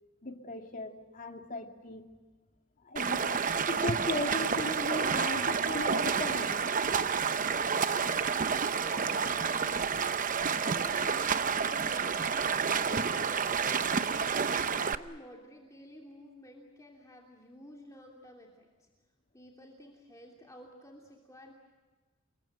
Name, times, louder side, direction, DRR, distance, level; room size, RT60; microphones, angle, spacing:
voice 1, 0.2-2.1 2.8-6.7, left 2 dB, 40° left, 3 dB, 2.6 m, -37 dB
Stream, 3.0-15.0, right 6 dB, 40° right, 0.8 m, -29 dB
voice 2, 7.9-8.3 8.6-10.1 10.5-12.4 13.1-14.3 14.8-18.9 19.3-21.5, left 1 dB, 15° left, -1 dB, 2.9 m, -51 dB
29.5 x 21.5 x 7.7 m, 1.3 s
head